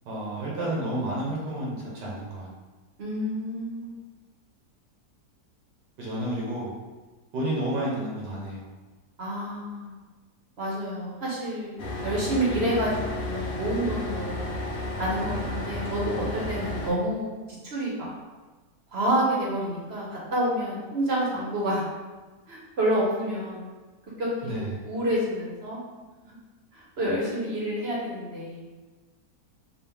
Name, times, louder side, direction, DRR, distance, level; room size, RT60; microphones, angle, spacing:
voice 1, 0.0-2.5 6.0-6.7 7.3-8.6 15.2-15.5 24.4-24.8, right 1 dB, 90° right, -5 dB, 1.7 m, -31 dB
voice 2, 3.0-3.9 9.2-9.9 10.6-14.5 15.0-17.3 17.7-18.1 18.9-20.1 20.3-21.9 22.5-23.7 24.2-25.8 27.0-28.7, right 1 dB, 45° right, -5 dB, 0.9 m, -28 dB
sound 1, 11.8-16.9, left 2 dB, 65° left, 0.5 m, -32 dB
4.3 x 2.5 x 3.5 m, 1.3 s
omnidirectional pair, 1.8 m